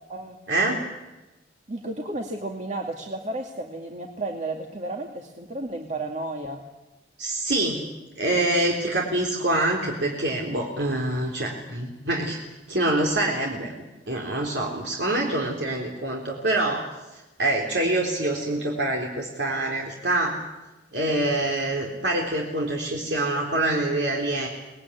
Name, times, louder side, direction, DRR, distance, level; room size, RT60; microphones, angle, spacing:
voice 1, 0.5-0.8 7.2-7.8 8.2-12.4 12.7-13.7 14.1-16.8 17.4-20.4 20.9-24.5, right 2 dB, 70° right, -1 dB, 3.9 m, -25 dB
voice 2, 1.7-6.6, right 2 dB, 40° right, 2 dB, 2.3 m, -32 dB
26.0 x 20.0 x 10.0 m, 1.1 s
head